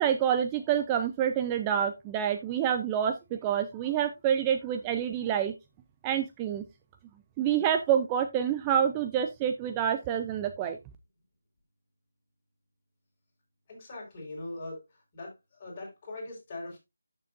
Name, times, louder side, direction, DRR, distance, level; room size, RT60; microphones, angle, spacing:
voice 1, 0.0-5.5 6.0-6.6 7.4-10.8, right 9 dB, 15° right, 7 dB, 0.5 m, -27 dB
voice 2, 13.7-16.8, left 2 dB, 30° left, -2 dB, 4.5 m, -41 dB
12.0 x 6.8 x 2.5 m, 0.23 s
figure-of-eight pair, 155°, 0 cm